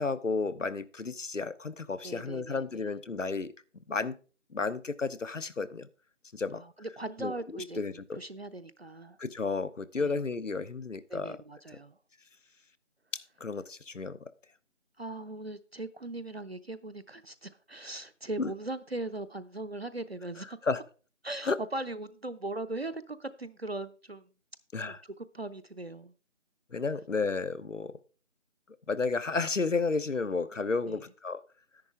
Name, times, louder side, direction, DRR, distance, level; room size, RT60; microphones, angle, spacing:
voice 1, 0.0-3.5 3.9-4.2 4.5-5.9 6.3-6.6 7.2-8.2 9.2-11.4 13.4-14.3 18.4-18.5 20.6-20.8 21.4-21.6 24.7-25.0 26.7-28.0 28.9-31.4, left 4 dB, 75° left, 16 dB, 0.9 m, -32 dB
voice 2, 2.0-2.8 6.5-9.2 10.0-10.2 11.1-12.0 15.0-20.6 21.2-24.3 24.9-25.0 25.3-26.1 30.9-31.0, right 2 dB, 55° right, 11 dB, 0.7 m, -39 dB
10.5 x 8.7 x 3.5 m, 0.36 s
figure-of-eight pair, 175°, 37 cm